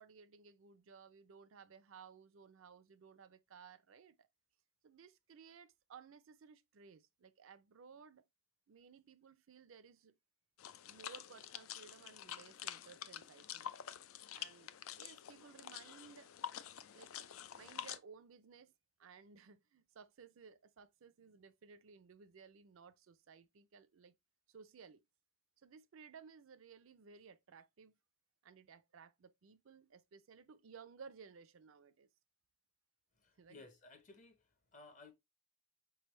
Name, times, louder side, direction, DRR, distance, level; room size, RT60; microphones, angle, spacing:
voice 1, 0.0-4.3 4.8-8.3 8.7-10.1 10.9-13.7 14.3-16.3 16.9-18.7 19.0-24.2 24.5-25.0 25.6-28.0 28.4-32.1 33.4-33.7, right 6 dB, 65° right, 0.4 m, -58 dB
sound 1, 10.6-18.0, left 10 dB, 75° left, 0.4 m, -48 dB
voice 2, 33.2-35.1, left 3 dB, 35° left, 0.8 m, -58 dB
4.8 x 3.3 x 3.0 m
head